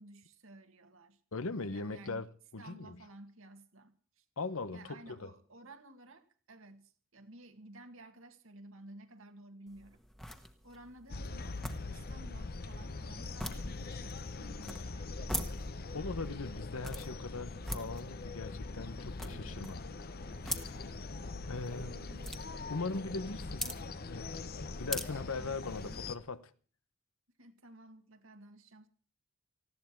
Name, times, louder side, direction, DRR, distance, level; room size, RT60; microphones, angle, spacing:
voice 1, 0.0-1.2 1.7-2.2 2.6-4.2 4.7-10.0 10.6-14.1 14.4-15.3 19.3-19.8 21.8-22.3 25.0-26.0 27.4-28.9, right 1 dB, 65° right, 2.2 m, -54 dB
voice 2, 1.3-2.3 2.5-3.0 4.4-5.3 15.9-19.8 20.4-20.9 21.5-22.0 22.7-23.7 24.1-26.5, left 3 dB, 75° left, 1.0 m, -40 dB
sound 1, 9.7-26.2, equal, ahead, 1.4 m, -45 dB
sound 2, 11.1-26.1, left 3 dB, 45° left, 0.9 m, -42 dB
19.0 x 15.5 x 4.6 m
head